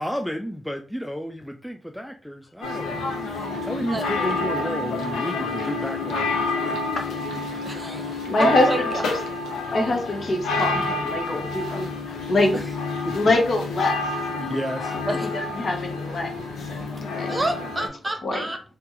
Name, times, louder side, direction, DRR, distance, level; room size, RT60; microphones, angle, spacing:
voice 1, 0.0-6.8 12.5-12.7 13.0-13.2 14.4-14.9 16.7-16.8, equal, 5° left, 4 dB, 0.3 m, -32 dB
sound 1, 2.6-17.9, left 3 dB, 85° left, 0.5 m, -29 dB
voice 2, 7.6-8.8 15.0-15.3 17.3-18.6, right 2 dB, 25° right, 5 dB, 0.7 m, -28 dB
voice 3, 8.3-8.7 8.9-9.2 9.7-12.5 13.1-14.2 15.2-16.3 16.6-17.4 17.8-17.9 18.2-18.5, left 2 dB, 60° left, 2 dB, 0.9 m, -24 dB
2.8 x 2.1 x 3.7 m, 0.39 s
supercardioid pair, 40°, 0 cm